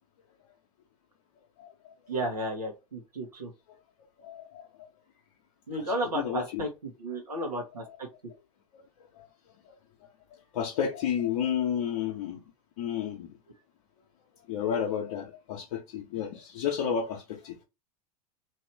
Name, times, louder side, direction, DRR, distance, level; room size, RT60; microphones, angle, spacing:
voice 1, 2.1-3.5 5.7-8.1, right 1 dB, 80° right, 1.0 m, -33 dB
voice 2, 4.2-4.6 6.1-6.7 8.7-8.8 9.2-9.3 10.5-12.4 12.8-13.3 14.5-17.6, left 8 dB, 55° left, 0.8 m, -31 dB
3.0 x 2.7 x 3.1 m
figure-of-eight pair, 90°, 20 cm